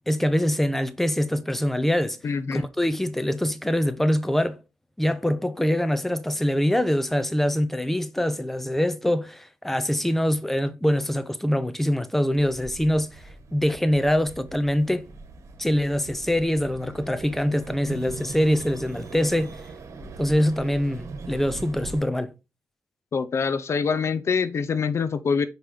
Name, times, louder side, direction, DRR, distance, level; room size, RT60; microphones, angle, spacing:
voice 1, 0.1-2.2 2.5-4.6 5.0-13.2 13.5-15.1 15.6-19.6 20.2-22.3, equal, 5° left, 0.7 m, -24 dB
voice 2, 2.2-2.7 23.1-25.5, left 5 dB, 55° left, 0.5 m, -25 dB
sound 1, 12.3-22.0, right 3 dB, 70° right, 1.6 m, -41 dB
6.0 x 5.1 x 3.5 m
cardioid pair, 95°, 6 cm